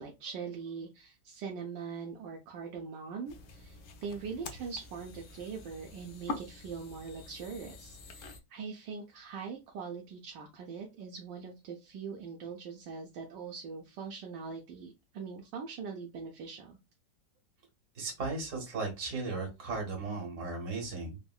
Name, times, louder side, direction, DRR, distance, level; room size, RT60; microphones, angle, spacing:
voice 1, 0.0-16.8, right 5 dB, 80° right, 0 dB, 1.2 m, -42 dB
sound 1, 3.3-8.4, left 3 dB, 85° left, 0.6 m, -45 dB
voice 2, 17.9-21.2, right 3 dB, 55° right, 0 dB, 1.5 m, -36 dB
3.6 x 2.1 x 2.3 m, 0.24 s
omnidirectional pair, 1.9 m